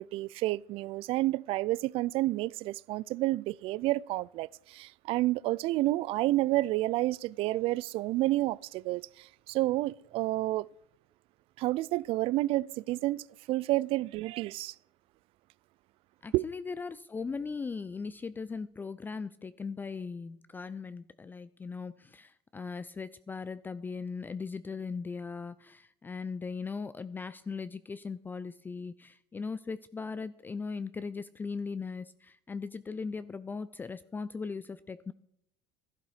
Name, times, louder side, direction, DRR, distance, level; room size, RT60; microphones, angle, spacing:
voice 1, 0.0-10.7 11.6-14.7 16.3-16.5, right 17 dB, 60° right, 0.4 m, -30 dB
voice 2, 16.2-35.1, left 5 dB, 20° left, 0.4 m, -39 dB
12.0 x 11.5 x 4.9 m
supercardioid pair, 100°, 11 cm